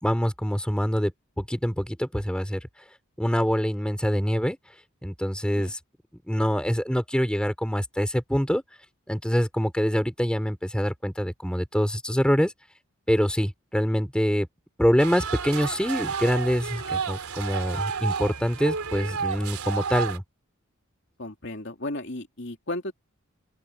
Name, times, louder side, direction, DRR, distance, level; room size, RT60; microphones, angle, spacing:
voice 1, 0.0-2.6 3.2-4.6 5.0-5.8 6.3-8.6 9.1-12.5 13.1-14.5 14.8-20.2, equal, 5° left, 3.7 m, -25 dB
sound 1, 15.0-20.2, right 6 dB, 85° right, 3.5 m, -31 dB
voice 2, 21.2-22.9, left 1 dB, 55° left, 2.8 m, -34 dB
open air
head